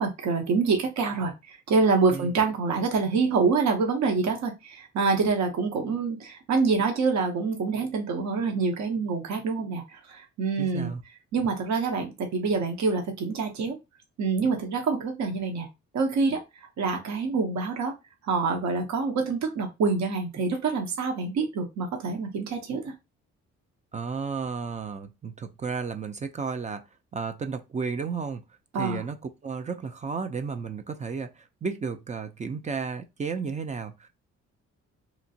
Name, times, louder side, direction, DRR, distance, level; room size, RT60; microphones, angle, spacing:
voice 1, 0.0-10.9 11.3-13.8 14.2-15.7 15.9-16.4 16.8-17.9 18.2-22.9 28.7-29.0, right 4 dB, 65° right, 0.8 m, -26 dB
voice 2, 10.6-11.0 23.9-26.8 27.1-28.4 28.8-34.1, right 5 dB, 25° right, 0.3 m, -33 dB
2.9 x 2.4 x 2.7 m
cardioid pair, 90°, 30 cm